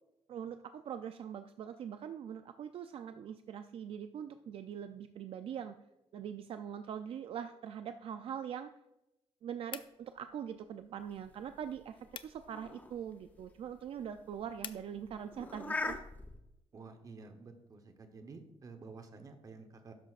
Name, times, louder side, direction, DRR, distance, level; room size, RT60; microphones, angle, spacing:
voice 1, 0.3-5.8 6.1-8.7 9.4-16.0, right 8 dB, 60° right, 9 dB, 0.4 m, -43 dB
sound 1, 9.7-14.9, left 8 dB, 50° left, 0.5 m, -52 dB
sound 2, 11.1-16.4, left 2 dB, 15° left, 0.7 m, -43 dB
voice 2, 16.7-19.9, right 4 dB, 35° right, 7 dB, 1.0 m, -51 dB
12.5 x 10.0 x 2.5 m, 0.91 s
wide cardioid pair, 170°, 11 cm